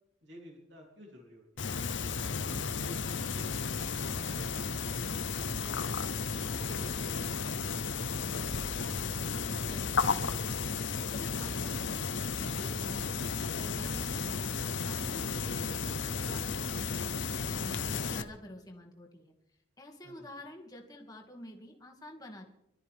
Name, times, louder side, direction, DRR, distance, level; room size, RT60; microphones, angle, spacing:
voice 1, 0.2-5.8 20.0-20.3, equal, 60° right, -1 dB, 3.7 m, -54 dB
sound 1, 1.6-18.2, left 5 dB, 65° left, 0.8 m, -33 dB
voice 2, 9.4-10.5 10.9-13.2 13.5-17.0 17.3-19.3 19.8-22.4, left 1 dB, 20° left, 0 dB, 2.3 m, -48 dB
26.0 x 13.5 x 3.7 m, 0.86 s
head